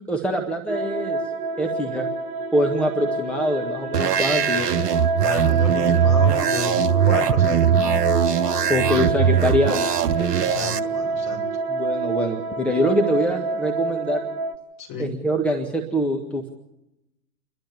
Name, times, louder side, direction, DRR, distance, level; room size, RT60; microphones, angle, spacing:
voice 1, 0.1-1.2 1.6-2.1 2.5-4.7 8.7-9.9 11.7-14.2 15.0-16.5, equal, ahead, 1 dB, 1.8 m, -24 dB
sound 1, 0.7-14.5, right 3 dB, 35° right, 1.3 m, -27 dB
sound 2, 3.9-10.8, right 9 dB, 70° right, 1.0 m, -21 dB
voice 2, 5.2-8.0 10.3-11.4 14.8-15.1, left 2 dB, 40° left, 1 dB, 7.2 m, -31 dB
29.5 x 12.0 x 8.7 m, 0.91 s
figure-of-eight pair, 95°, 49 cm